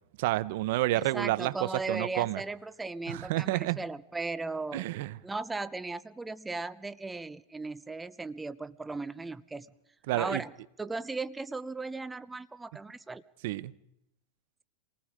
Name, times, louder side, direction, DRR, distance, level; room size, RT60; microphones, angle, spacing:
voice 1, 0.2-2.4 3.1-3.8 4.7-5.2 10.1-10.4 13.4-13.7, right 17 dB, 65° right, 0.8 m, -29 dB
voice 2, 0.9-4.9 5.2-9.7 10.1-10.5 10.8-13.2, right 3 dB, 10° right, 0.7 m, -37 dB
27.5 x 19.0 x 5.0 m
hypercardioid pair, 120°, 0 cm